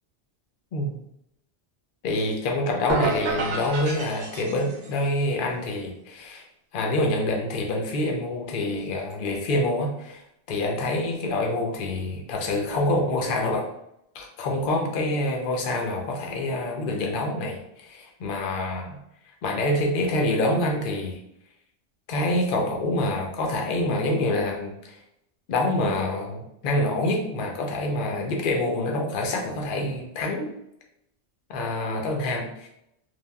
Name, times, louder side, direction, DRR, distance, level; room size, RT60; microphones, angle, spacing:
voice 1, 2.0-6.4 6.7-10.2 10.5-13.6 14.1-19.0 19.4-21.2 22.1-25.0 25.5-30.5 31.5-32.7, left 1 dB, 60° left, 1 dB, 0.7 m, -26 dB
sound 1, 2.9-5.0, right 3 dB, 80° right, 0.9 m, -29 dB
3.3 x 2.2 x 2.2 m, 0.79 s
omnidirectional pair, 1.2 m